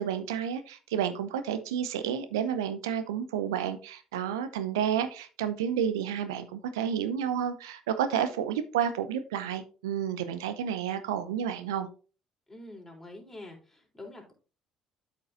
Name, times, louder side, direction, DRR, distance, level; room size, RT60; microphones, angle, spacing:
voice 1, 0.0-11.9, right 9 dB, 75° right, 0.6 m, -30 dB
voice 2, 12.5-14.3, left 2 dB, 10° left, 3.6 m, -46 dB
12.5 x 5.2 x 2.5 m
figure-of-eight pair, 50°, 2 cm